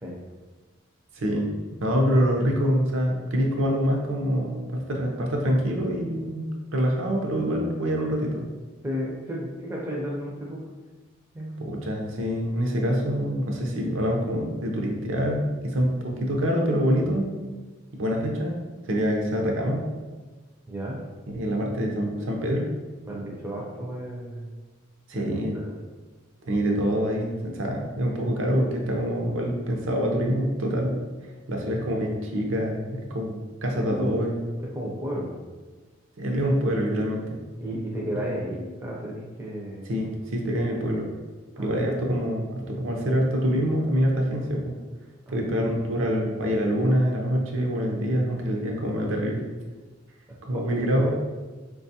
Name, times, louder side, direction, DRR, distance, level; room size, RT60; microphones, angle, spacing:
voice 1, 1.1-1.5 1.8-6.5 6.7-8.5 11.6-17.3 17.9-18.6 18.9-19.8 21.3-22.7 25.1-25.5 26.4-31.0 31.5-33.4 33.6-34.4 36.2-37.4 39.9-41.1 41.6-44.8 45.3-49.5 50.4-51.1, equal, 70° right, 0 dB, 0.6 m, -25 dB
voice 2, 8.8-10.7 11.3-11.8 20.7-21.0 23.0-24.5 25.1-25.2 25.5-25.7 33.7-34.2 34.6-35.3 37.6-39.9 41.6-41.8 45.3-45.5 50.5-51.1, equal, 10° right, -4 dB, 0.4 m, -33 dB
4.3 x 2.3 x 2.7 m, 1.3 s
head